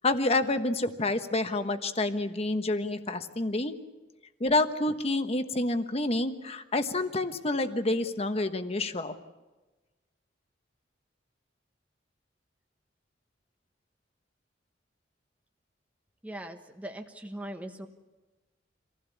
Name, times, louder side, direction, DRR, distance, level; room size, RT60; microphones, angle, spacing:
voice 1, 0.0-3.7 4.4-9.1, left 2 dB, 35° left, 9 dB, 1.1 m, -28 dB
voice 2, 16.2-17.9, right 1 dB, 10° right, 5 dB, 1.1 m, -40 dB
25.5 x 16.0 x 8.4 m, 1.2 s
head